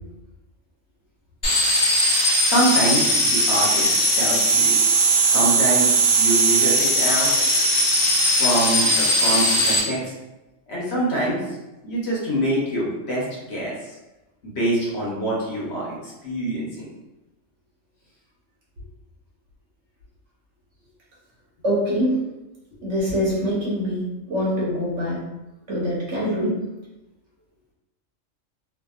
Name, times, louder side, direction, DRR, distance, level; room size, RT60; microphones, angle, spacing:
sound 1, 1.4-9.8, right 1 dB, 25° left, 0.5 m, -19 dB
voice 1, 2.1-4.8 5.1-7.3 8.4-10.1 10.7-11.6 11.8-14.0 14.4-16.9, right 1 dB, 55° left, -6 dB, 1.1 m, -25 dB
voice 2, 21.6-22.2 22.8-25.2 25.7-26.6, equal, 65° right, -6 dB, 1.2 m, -24 dB
2.8 x 2.7 x 2.3 m, 1.0 s
omnidirectional pair, 1.3 m